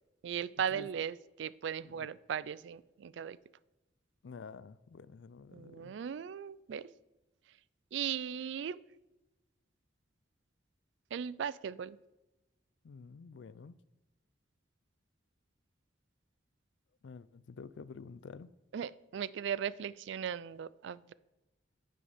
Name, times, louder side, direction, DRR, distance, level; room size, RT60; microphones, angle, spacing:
voice 1, 0.2-3.4 5.5-6.9 7.9-8.8 11.1-12.0 18.7-21.1, right 8 dB, 75° right, 0.3 m, -37 dB
voice 2, 4.2-5.9 12.8-13.8 17.0-18.5, left 5 dB, 75° left, 0.4 m, -49 dB
9.5 x 5.6 x 5.1 m
head